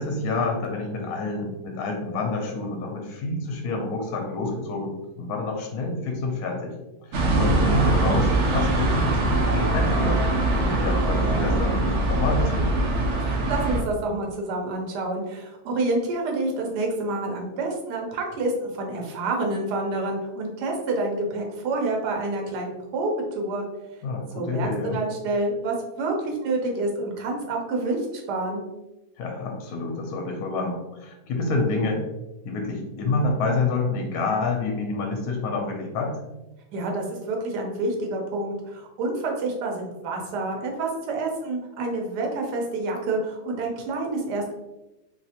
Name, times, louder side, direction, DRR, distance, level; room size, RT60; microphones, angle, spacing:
voice 1, 0.0-6.8 7.1-10.2 10.5-12.7 24.0-25.0 29.2-32.0 32.4-36.2, left 3 dB, 70° left, 2 dB, 1.1 m, -28 dB
sound 1, 7.1-13.8, right 2 dB, 60° right, 0.8 m, -22 dB
voice 2, 13.2-23.1 23.3-23.6 24.3-28.6 36.7-44.5, right 2 dB, 80° right, 1 dB, 1.3 m, -28 dB
3.1 x 3.1 x 2.8 m, 1.0 s
omnidirectional pair, 1.8 m